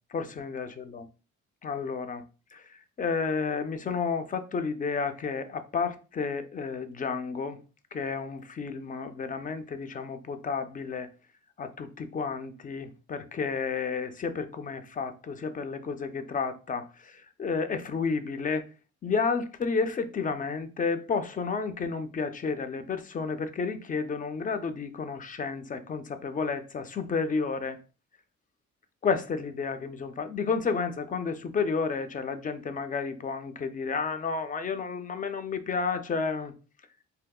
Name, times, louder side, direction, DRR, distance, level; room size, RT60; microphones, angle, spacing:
voice 1, 0.1-1.1 1.6-2.2 2.5-7.6 7.9-11.1 11.6-18.7 19.0-27.8 29.0-36.5, left 5 dB, 25° left, 0.4 m, -31 dB
3.4 x 2.7 x 2.3 m
cardioid pair, 90°, 30 cm